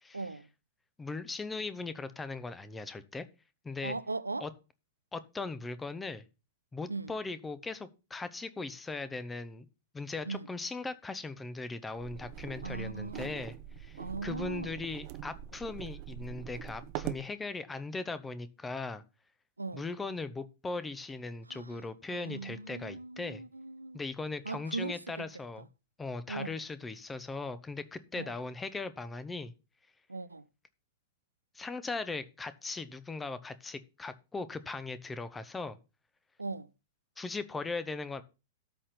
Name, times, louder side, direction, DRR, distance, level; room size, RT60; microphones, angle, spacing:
voice 1, 0.1-0.5 3.8-4.5 6.9-7.1 10.3-10.5 12.6-13.3 14.0-14.8 19.6-19.9 21.5-21.8 22.1-24.0 24.4-25.0 25.6-25.7 26.3-26.6 28.1-28.3 30.1-30.5 36.4-36.7, right 3 dB, 85° right, 0.6 m, -39 dB
voice 2, 1.0-3.3 3.6-4.0 4.4-4.5 5.1-6.3 6.7-9.7 9.9-19.0 19.7-23.4 23.9-25.7 26.0-29.5 31.5-35.8 37.2-38.2, left 3 dB, 10° left, 1.1 m, -39 dB
sound 1, 12.0-17.3, right 12 dB, 40° right, 0.9 m, -43 dB
13.0 x 4.4 x 6.9 m
figure-of-eight pair, 100°, 0 cm